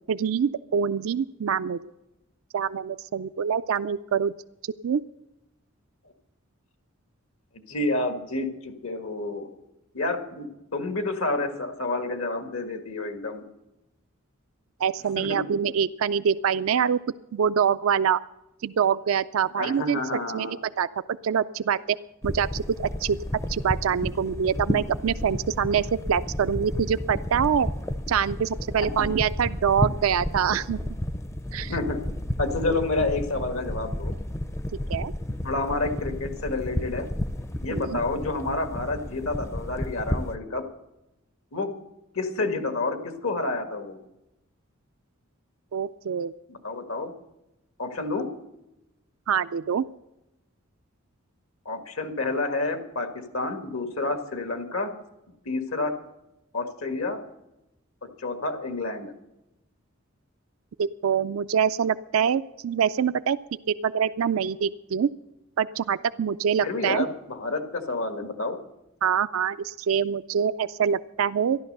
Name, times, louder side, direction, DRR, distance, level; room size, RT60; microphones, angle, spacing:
voice 1, 0.1-1.8 2.5-4.3 4.8-5.0 14.8-17.0 17.3-18.2 18.6-20.0 20.3-20.9 21.2-21.8 22.2-23.2 23.5-27.7 28.1-30.8 31.5-31.7 34.9-35.1 37.7-38.0 45.7-46.3 49.3-49.8 60.8-63.4 63.8-65.1 65.6-67.1 69.0-71.6, right 7 dB, 80° right, 13 dB, 0.4 m, -25 dB
voice 2, 7.7-9.5 9.9-13.4 15.2-15.5 19.6-20.6 28.8-29.2 31.6-32.0 32.4-34.1 35.4-37.1 37.6-40.6 41.5-41.7 42.2-44.0 46.5-47.1 47.8-48.3 51.7-53.1 53.3-54.9 55.5-55.9 56.5-57.2 58.2-59.1 66.6-68.6, left 2 dB, 80° left, 6 dB, 1.8 m, -29 dB
sound 1, 22.2-40.4, left 1 dB, 15° left, 0.5 m, -32 dB
13.5 x 11.5 x 6.6 m, 0.91 s
head